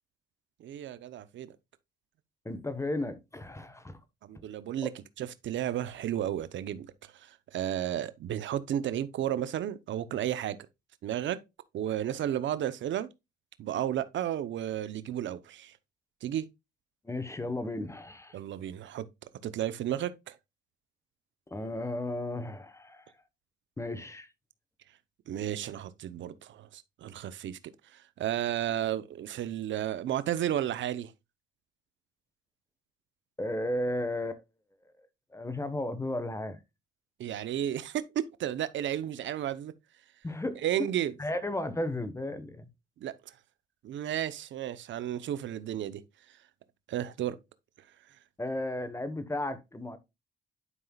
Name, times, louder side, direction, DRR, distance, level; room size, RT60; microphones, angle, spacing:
voice 1, 0.6-1.6 4.2-4.9 5.2-10.6 11.0-11.4 11.7-13.1 13.6-15.8 16.2-16.4 18.3-19.0 19.4-20.4 25.3-27.6 27.9-31.1 37.2-39.7 40.6-41.1 43.0-43.3 43.8-46.0 46.9-47.4, right 11 dB, 70° right, 0.8 m, -33 dB
voice 2, 2.4-4.0 4.8-4.9 17.0-18.4 21.5-23.1 23.8-24.3 33.4-34.4 35.3-36.6 40.2-40.9 41.2-42.7 48.4-50.0, left 1 dB, 15° left, 1.2 m, -34 dB
11.0 x 5.5 x 2.3 m
cardioid pair, 90°, 20 cm